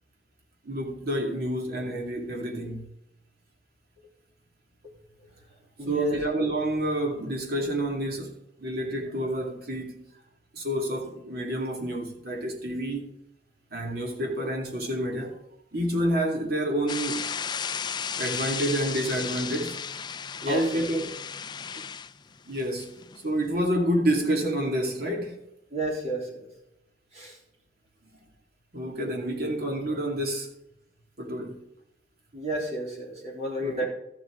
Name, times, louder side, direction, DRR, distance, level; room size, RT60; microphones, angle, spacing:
voice 1, 0.6-2.8 5.9-8.3 8.6-10.0 10.5-13.1 13.7-15.4 15.7-17.2 18.2-19.7 20.4-21.1 21.7-21.8 22.5-22.9 23.2-25.4 28.7-30.5 31.2-31.6 33.6-33.8, right 1 dB, 60° right, 2.4 m, -28 dB
voice 2, 5.8-6.2 20.4-20.9 25.7-26.5 27.1-27.4 32.3-33.8, right 1 dB, 40° right, 3.6 m, -31 dB
sound 1, 16.9-23.2, left 7 dB, 25° left, 0.4 m, -34 dB
13.0 x 7.9 x 3.7 m
head